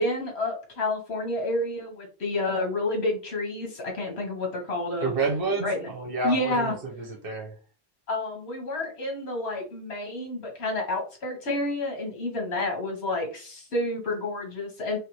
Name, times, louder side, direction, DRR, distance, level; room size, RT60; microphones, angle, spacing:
voice 1, 0.0-5.1 5.6-5.9 6.2-6.7 8.1-15.0, left 2 dB, 75° left, 2 dB, 1.5 m, -29 dB
voice 2, 5.0-7.5, right 3 dB, 60° right, 2 dB, 1.2 m, -29 dB
3.4 x 3.4 x 3.0 m, 0.36 s
omnidirectional pair, 1.1 m